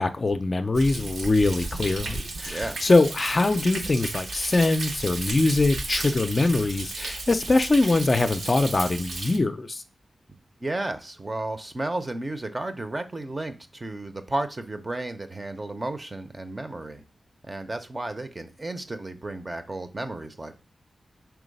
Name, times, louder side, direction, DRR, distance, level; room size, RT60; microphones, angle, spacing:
voice 1, 0.0-9.8, left 2 dB, 35° left, 0.4 m, -23 dB
Thunder, 0.7-9.4, right 2 dB, 75° right, 0.9 m, -34 dB
voice 2, 2.5-2.8 10.6-17.0 17.5-20.6, right 2 dB, 25° right, 0.6 m, -33 dB
4.6 x 3.9 x 5.2 m
wide cardioid pair, 135°, 0 cm